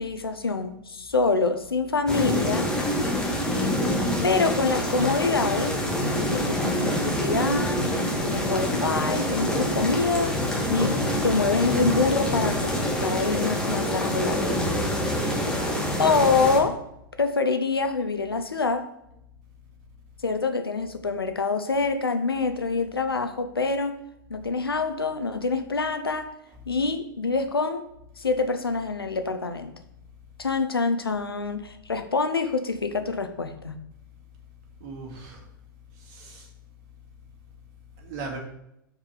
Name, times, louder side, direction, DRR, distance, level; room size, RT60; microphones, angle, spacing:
voice 1, 0.0-2.7 4.2-5.8 6.1-7.8 8.2-10.3 10.7-14.6 15.2-15.4 16.0-16.8 17.2-18.9 20.2-23.9 24.3-26.3 26.7-27.8 28.2-29.7 30.4-33.7, left 4 dB, 90° left, 8 dB, 0.7 m, -26 dB
sound 1, 2.1-16.6, equal, 5° left, 1.7 m, -26 dB
voice 2, 8.2-8.7 15.1-15.4 34.8-35.4 36.1-36.5 38.0-38.4, right 3 dB, 50° right, 0 dB, 2.3 m, -39 dB
5.7 x 4.8 x 5.0 m, 0.80 s
figure-of-eight pair, 105°, 12 cm